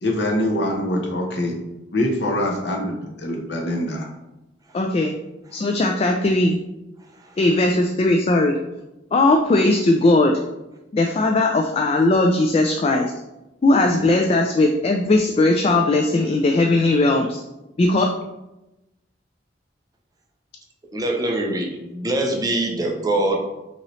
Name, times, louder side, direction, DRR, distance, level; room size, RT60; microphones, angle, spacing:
voice 1, 0.0-1.5 1.9-4.1, left 1 dB, 70° left, 0 dB, 0.9 m, -24 dB
voice 2, 4.7-5.1 5.5-6.6 7.4-8.6 9.1-10.4 10.9-13.1 13.6-17.4 17.8-18.1, left 2 dB, 35° left, 3 dB, 0.3 m, -18 dB
voice 3, 20.9-23.4, right 1 dB, 20° right, 1 dB, 0.5 m, -23 dB
5.4 x 2.9 x 3.1 m, 0.96 s
head